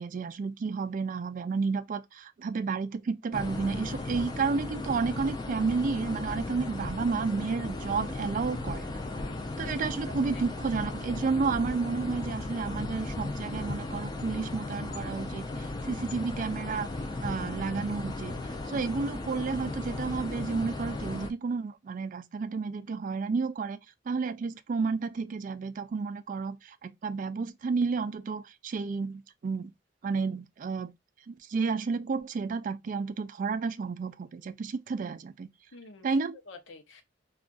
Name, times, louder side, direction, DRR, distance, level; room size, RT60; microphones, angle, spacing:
voice 1, 0.0-8.9 9.6-16.9 17.2-18.3 18.7-23.8 24.1-29.7 30.0-30.9 31.3-35.5 36.0-36.4, right 4 dB, 45° right, 0.3 m, -31 dB
sound 1, 3.3-21.3, left 2 dB, 20° left, 0.5 m, -36 dB
voice 2, 9.1-10.4 35.7-36.2 36.5-37.0, left 2 dB, 80° left, 0.7 m, -49 dB
2.4 x 2.4 x 3.6 m
head